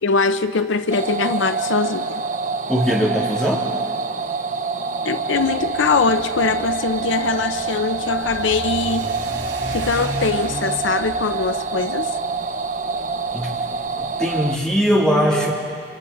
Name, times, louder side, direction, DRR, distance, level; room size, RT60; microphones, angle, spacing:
voice 1, 0.0-2.2 5.0-9.1 9.7-12.1, left 4 dB, 80° left, 11 dB, 0.6 m, -22 dB
sound 1, 0.9-14.6, right 4 dB, 40° right, 0.7 m, -26 dB
voice 2, 2.7-3.6 13.3-13.5 14.0-15.5, equal, 5° left, -5 dB, 3.4 m, -20 dB
Car / Accelerating revving vroom, 5.3-14.7, right 1 dB, 75° right, 4.1 m, -36 dB
27.0 x 26.5 x 4.3 m, 2.2 s
head